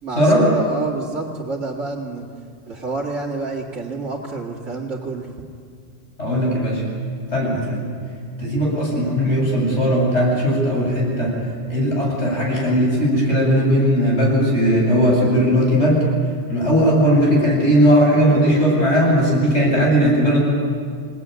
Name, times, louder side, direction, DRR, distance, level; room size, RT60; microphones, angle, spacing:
voice 1, 0.0-2.3 2.7-5.3, right 3 dB, 70° right, -4 dB, 2.6 m, -28 dB
voice 2, 6.2-6.8 7.3-7.8 8.4-11.3 11.7-16.0 16.5-20.4, equal, 65° left, -3 dB, 8.4 m, -17 dB
28.0 x 19.0 x 9.6 m, 2.2 s
omnidirectional pair, 1.3 m